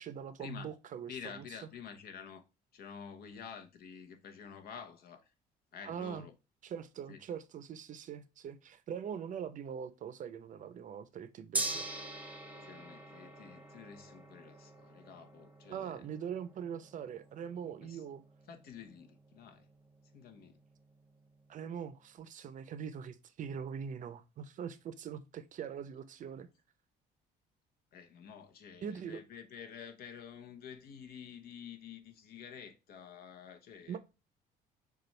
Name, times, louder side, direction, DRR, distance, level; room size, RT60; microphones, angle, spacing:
voice 1, 0.0-1.4 5.8-6.3 6.6-11.9 15.7-18.2 21.5-26.5 28.8-29.2 33.9-34.0, right 7 dB, 50° right, 0.6 m, -42 dB
voice 2, 1.1-2.5 2.7-5.3 5.7-6.3 7.1-7.2 12.6-16.0 17.8-18.0 18.5-19.7 20.1-20.6 27.9-34.0, left 7 dB, 65° left, 0.9 m, -49 dB
Gong, 11.5-21.8, right 2 dB, 10° right, 0.9 m, -45 dB
6.7 x 2.4 x 3.2 m
cardioid pair, 110°, 17 cm